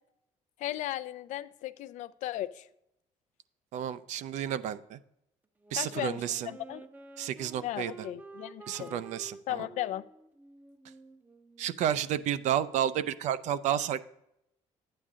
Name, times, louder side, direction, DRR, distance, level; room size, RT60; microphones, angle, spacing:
voice 1, 0.6-2.7 5.7-6.8 7.6-9.0 9.5-10.0, left 14 dB, 70° left, 14 dB, 0.5 m, -36 dB
voice 2, 3.7-5.0 5.7-6.5 7.2-7.9 8.7-9.6 11.6-14.0, right 10 dB, 65° right, 15 dB, 0.5 m, -31 dB
Wind instrument woodwind instrument, 5.6-12.3, right 3 dB, 15° right, 0.6 m, -51 dB
12.0 x 8.7 x 3.7 m, 0.82 s
cardioid pair, 150°, 13 cm